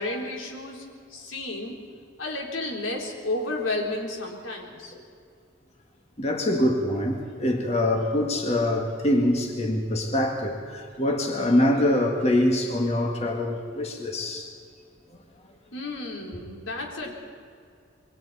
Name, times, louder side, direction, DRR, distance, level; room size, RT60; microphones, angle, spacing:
voice 1, 0.0-1.8 2.2-4.9 15.7-17.2, left 2 dB, 90° left, 3.9 m, -32 dB
voice 2, 6.2-14.5, left 1 dB, 35° left, 2.0 m, -24 dB
27.0 x 23.0 x 4.3 m
head